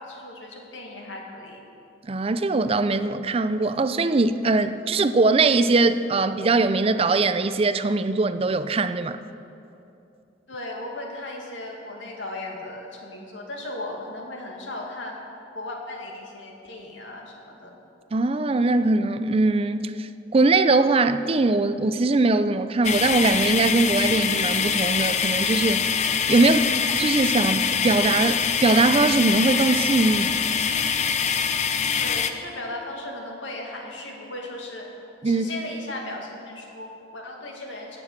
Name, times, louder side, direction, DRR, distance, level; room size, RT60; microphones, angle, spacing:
voice 1, 0.0-1.6 10.5-15.2 15.5-17.8 26.4-26.7 32.0-34.9 35.2-38.0, left 1 dB, 90° left, 0 dB, 2.3 m, -36 dB
voice 2, 2.1-9.2 18.1-26.6 27.0-30.3 35.2-35.5, right 3 dB, 30° right, 12 dB, 0.5 m, -21 dB
sound 1, 22.8-32.3, left 7 dB, 40° left, 0.6 m, -24 dB
18.5 x 6.9 x 7.4 m, 2.7 s
head